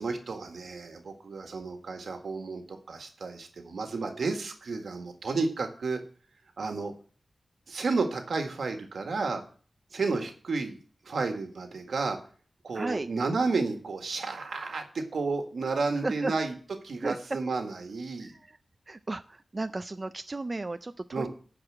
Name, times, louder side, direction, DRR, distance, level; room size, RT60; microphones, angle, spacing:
voice 1, 0.0-6.0 6.6-6.9 7.7-9.4 9.9-10.8 11.0-12.2 12.6-16.5 16.8-18.4 21.1-21.3, right 4 dB, 85° right, 5 dB, 1.7 m, -31 dB
voice 2, 12.7-13.1 16.0-16.3 17.0-17.2 18.9-19.2 19.5-20.9, right 2 dB, 35° right, 10 dB, 0.4 m, -33 dB
9.6 x 4.9 x 7.7 m, 0.43 s
wide cardioid pair, 80°, 0 cm